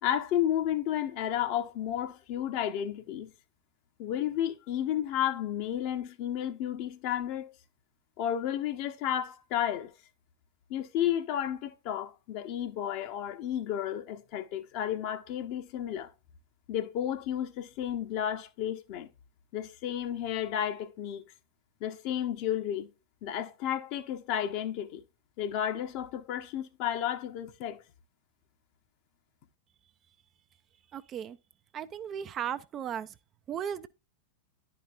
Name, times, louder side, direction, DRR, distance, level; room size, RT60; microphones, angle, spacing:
voice 1, 0.0-3.3 4.0-7.5 8.2-9.9 10.7-16.1 16.7-19.1 19.5-21.2 21.8-22.9 23.2-25.0 25.4-27.8, left 10 dB, 45° left, 0.9 m, -32 dB
voice 2, 30.9-31.4 31.7-33.1 33.5-33.9, right 9 dB, 30° right, 0.4 m, -36 dB
11.0 x 5.0 x 2.4 m
figure-of-eight pair, 90°, 0 cm